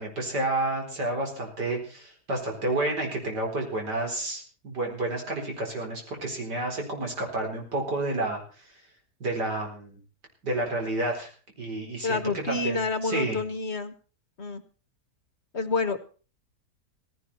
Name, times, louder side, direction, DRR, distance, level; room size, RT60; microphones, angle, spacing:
voice 1, 0.0-8.7 9.2-10.0 10.4-11.3 11.6-13.4, right 2 dB, 80° right, 2 dB, 5.0 m, -30 dB
voice 2, 12.0-13.9 14.4-14.6 15.5-16.0, left 4 dB, 45° left, 12 dB, 1.3 m, -28 dB
17.0 x 16.0 x 4.2 m, 0.37 s
omnidirectional pair, 1.8 m